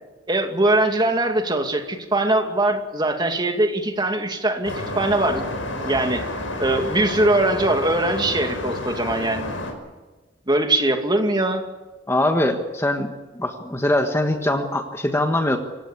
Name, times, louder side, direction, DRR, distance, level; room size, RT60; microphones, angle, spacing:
voice 1, 0.3-5.4 5.8-6.2 6.6-9.6 10.5-11.6, right 2 dB, 25° right, 4 dB, 2.5 m, -21 dB
sound 1, 4.6-9.7, left 1 dB, 85° left, 5.5 m, -30 dB
voice 2, 12.1-15.6, left 1 dB, 15° left, 5 dB, 1.5 m, -22 dB
27.5 x 16.5 x 8.6 m, 1.2 s
head